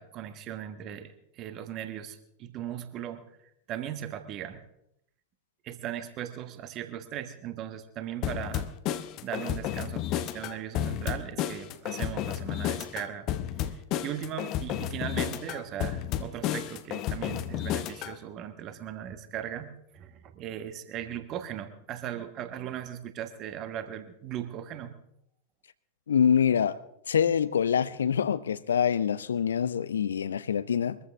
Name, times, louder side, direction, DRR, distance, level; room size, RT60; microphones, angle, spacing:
voice 1, 0.0-3.2 3.7-4.6 5.6-8.6 9.2-13.3 13.6-24.9, right 10 dB, 35° right, 1.4 m, -38 dB
sound 1, 8.2-18.2, left 11 dB, 40° left, 0.8 m, -32 dB
voice 2, 26.1-26.8 27.1-31.0, left 8 dB, 65° left, 0.6 m, -25 dB
23.0 x 14.0 x 3.6 m
figure-of-eight pair, 90°, 0 cm